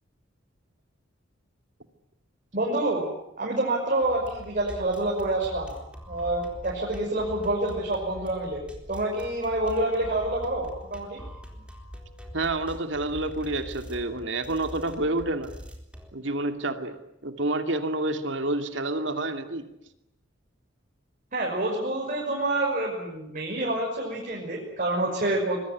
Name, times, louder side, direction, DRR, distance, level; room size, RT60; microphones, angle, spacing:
voice 1, 2.5-3.1 3.4-5.7 6.1-8.6 8.9-11.2 21.3-25.6, right 2 dB, 45° right, -2 dB, 6.2 m, -27 dB
sound 1, 4.0-16.1, equal, 5° right, 4.0 m, -43 dB
voice 2, 12.3-15.5 16.1-17.0 17.2-19.7, right 2 dB, 65° right, 7 dB, 2.7 m, -28 dB
25.5 x 21.5 x 9.4 m, 0.83 s
head